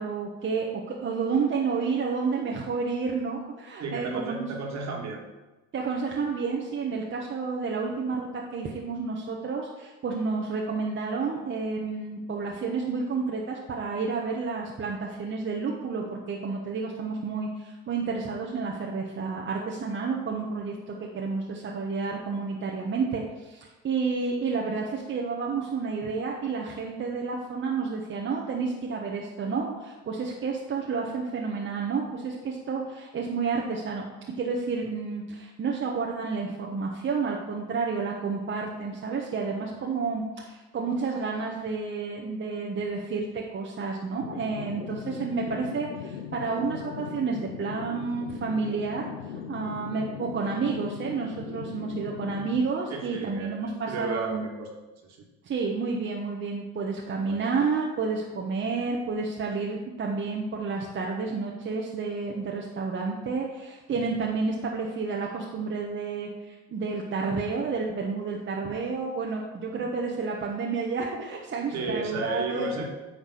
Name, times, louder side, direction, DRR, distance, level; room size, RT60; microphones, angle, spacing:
voice 1, 0.0-4.5 5.7-49.1 49.5-54.5 55.4-72.7, right 4 dB, 35° right, -1 dB, 1.2 m, -30 dB
voice 2, 3.8-5.2 49.6-49.8 52.9-54.7 55.1-55.2 57.2-57.4 63.9-64.0 69.7-69.9 71.7-72.8, right 3 dB, 55° right, 1 dB, 2.1 m, -34 dB
sound 1, 44.2-52.6, left 8 dB, 90° left, 0.7 m, -39 dB
9.2 x 3.9 x 6.4 m, 1.1 s
hypercardioid pair, 75°, 32 cm